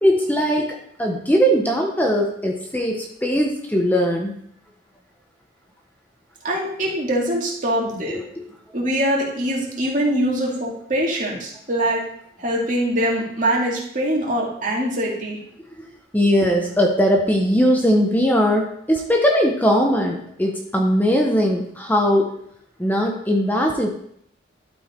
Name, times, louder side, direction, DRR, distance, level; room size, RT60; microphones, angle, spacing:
voice 1, 0.0-4.3 8.1-8.2 15.8-15.9 16.1-22.3 22.8-23.9, equal, 10° left, 1 dB, 0.7 m, -19 dB
voice 2, 6.4-8.2 8.7-12.0 12.4-15.4, right 1 dB, 45° right, -2 dB, 2.2 m, -23 dB
12.0 x 4.6 x 4.3 m, 0.69 s
head